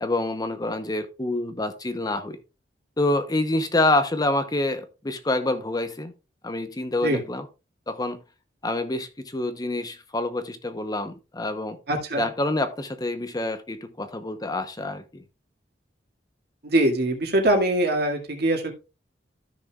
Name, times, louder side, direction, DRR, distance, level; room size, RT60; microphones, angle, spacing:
voice 1, 0.0-2.4 3.0-6.1 6.4-7.5 7.9-8.2 8.6-11.8 12.2-15.2, left 2 dB, 20° left, 0.8 m, -27 dB
voice 2, 11.9-12.2 16.6-18.7, right 1 dB, 65° right, 2.0 m, -22 dB
13.5 x 6.2 x 2.3 m
head